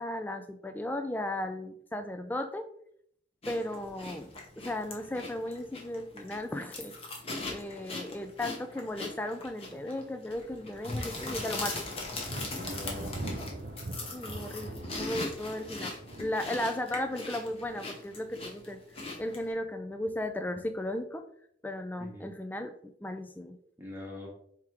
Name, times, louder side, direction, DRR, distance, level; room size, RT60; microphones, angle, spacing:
voice 1, 0.0-2.7 3.5-7.0 7.5-11.8 14.1-18.8 19.2-21.3 21.6-22.8 23.0-23.6, left 1 dB, 10° left, 7 dB, 0.3 m, -35 dB
sound 1, 3.4-19.5, left 2 dB, 30° left, 0.8 m, -40 dB
Thunder, 12.2-18.7 19.0-19.6 20.1-20.9, right 2 dB, 50° right, 0.5 m, -43 dB
voice 2, 12.5-13.2 22.0-22.6 23.8-24.3, left 1 dB, 10° right, -2 dB, 1.1 m, -42 dB
3.6 x 2.9 x 4.7 m, 0.68 s
head